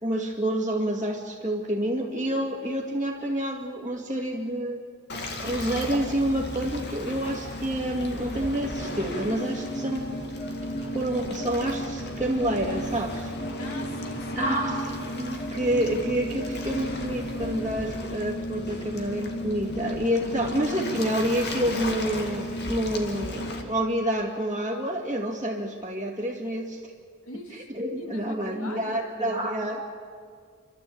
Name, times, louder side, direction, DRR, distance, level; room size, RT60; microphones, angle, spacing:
voice 1, 0.0-4.8 5.4-10.1 10.9-13.3 14.4-26.9 27.7-29.9, right 1 dB, 15° right, -6 dB, 2.1 m, -28 dB
Waves surf, 5.1-23.6, left 1 dB, 50° left, 2.2 m, -34 dB
sound 1, 8.3-17.8, equal, 35° left, 3.1 m, -37 dB
voice 2, 13.6-14.5 27.2-28.9, left 1 dB, 70° left, 5 dB, 2.3 m, -41 dB
29.0 x 13.0 x 8.6 m, 2.1 s
head